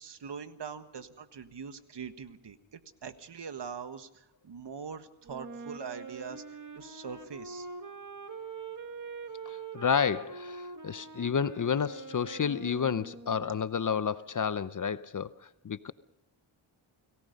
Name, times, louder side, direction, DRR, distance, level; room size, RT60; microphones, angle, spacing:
voice 1, 0.0-6.4 6.7-7.7, right 6 dB, 55° right, 10 dB, 1.6 m, -42 dB
Wind instrument woodwind instrument, 5.2-13.6, right 4 dB, 40° right, 2.3 m, -44 dB
voice 2, 9.5-15.9, left 7 dB, 40° left, 15 dB, 0.8 m, -30 dB
29.5 x 19.0 x 5.3 m, 0.82 s
cardioid pair, 75°, 49 cm